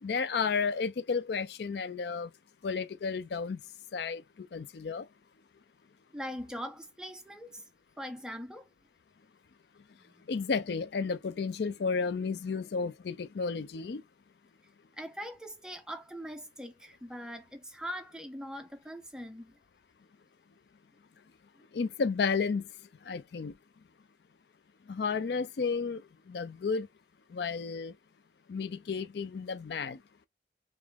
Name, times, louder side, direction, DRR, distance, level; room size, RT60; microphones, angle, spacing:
voice 1, 0.0-2.3 2.6-3.6 3.9-5.1 10.3-14.0 21.7-22.7 23.1-23.5 24.9-26.9 27.3-27.9 28.5-30.0, left 5 dB, 70° left, 0.4 m, -32 dB
voice 2, 6.1-7.6 8.0-8.7 10.1-10.2 15.0-19.6, equal, 5° right, 0.5 m, -41 dB
3.5 x 3.1 x 3.3 m
head